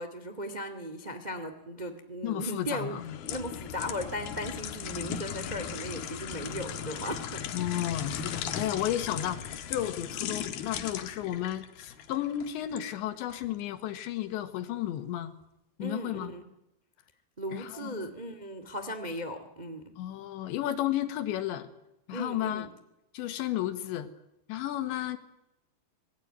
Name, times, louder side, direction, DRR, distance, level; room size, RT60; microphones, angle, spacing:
voice 1, 0.0-7.4 15.8-16.4 17.4-19.9 22.1-22.7, equal, 30° right, 8 dB, 0.7 m, -37 dB
voice 2, 2.2-3.2 7.5-9.4 9.7-15.3 15.8-16.3 17.5-18.1 20.0-21.7 22.1-22.7 23.1-24.1 24.5-25.2, left 12 dB, 85° left, 10 dB, 3.8 m, -33 dB
sound 1, 2.9-12.9 13.3-13.5, left 8 dB, 65° left, 3.1 m, -37 dB
26.0 x 20.5 x 9.2 m, 0.90 s
omnidirectional pair, 5.1 m